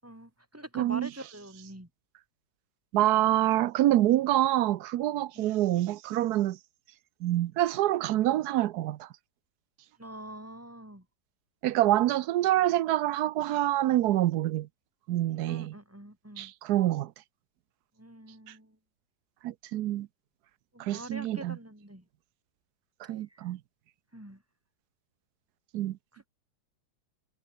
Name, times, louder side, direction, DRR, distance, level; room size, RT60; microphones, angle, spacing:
voice 1, 0.0-1.9 10.0-11.0 15.5-16.5 18.0-18.8 20.7-22.0 23.3-23.5 24.1-24.4 26.1-26.3, right 1 dB, 5° right, 6.0 m, -45 dB
voice 2, 0.8-1.1 2.9-6.6 7.2-9.1 11.6-14.7 15.1-15.7 16.4-17.1 19.4-20.1 20.8-21.6 23.1-23.6 25.7-26.0, right 14 dB, 70° right, 1.1 m, -26 dB
omnidirectional pair, 2.0 m